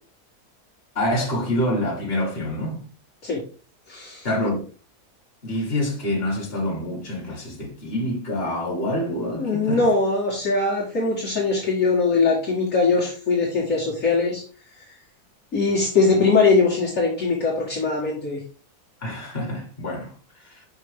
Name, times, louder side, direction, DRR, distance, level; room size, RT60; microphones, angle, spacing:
voice 1, 1.0-2.9 4.2-4.7 5.4-9.9 19.0-20.1, left 1 dB, 40° left, 2.1 m, -26 dB
voice 2, 3.9-4.3 9.4-14.4 15.5-18.4, left 4 dB, 55° left, 1.8 m, -21 dB
5.6 x 4.9 x 3.5 m
omnidirectional pair, 1.7 m